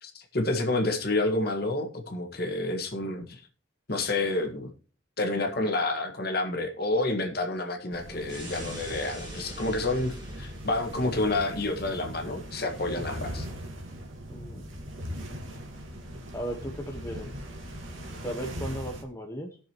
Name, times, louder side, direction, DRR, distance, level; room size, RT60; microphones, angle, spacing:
voice 1, 0.0-3.4 3.9-4.7 5.2-13.5, left 2 dB, 50° left, 4 dB, 1.7 m, -29 dB
sound 1, 7.9-19.0, equal, 90° right, 2.1 m, -40 dB
sound 2, 8.3-10.8, right 2 dB, 20° right, 3.5 m, -44 dB
voice 2, 14.3-14.7 16.3-17.3 18.2-19.6, right 1 dB, 15° left, 2 dB, 1.0 m, -36 dB
18.5 x 6.5 x 3.1 m, 0.38 s
head